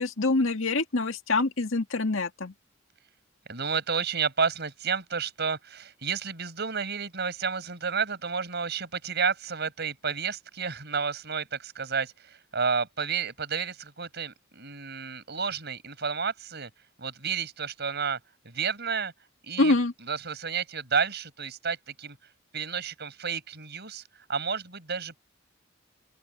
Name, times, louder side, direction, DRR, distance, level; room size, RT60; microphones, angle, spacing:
voice 1, 0.0-2.5 19.6-19.9, left 2 dB, 80° left, 2.0 m, -25 dB
voice 2, 3.5-16.7 17.0-18.2 18.4-19.1 19.4-19.7 20.0-22.2 22.5-25.2, right 6 dB, 55° right, 6.0 m, -31 dB
open air
head